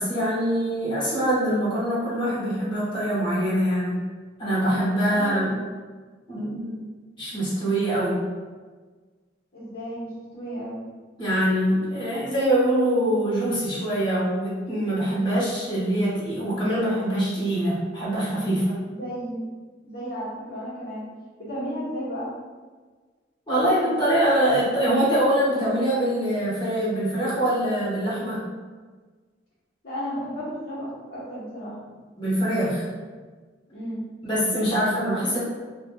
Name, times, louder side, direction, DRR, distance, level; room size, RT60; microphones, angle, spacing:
voice 1, 0.0-4.0 4.4-5.5 6.3-6.8 7.2-8.2 11.2-18.8 23.5-28.4 32.2-32.9 34.2-35.4, right 1 dB, 25° left, -9 dB, 1.0 m, -24 dB
voice 2, 9.5-10.8 18.9-19.5 19.8-21.1 21.4-22.3 29.8-32.0 33.7-34.0, equal, 55° left, -14 dB, 1.1 m, -33 dB
2.9 x 2.5 x 2.2 m, 1.4 s
head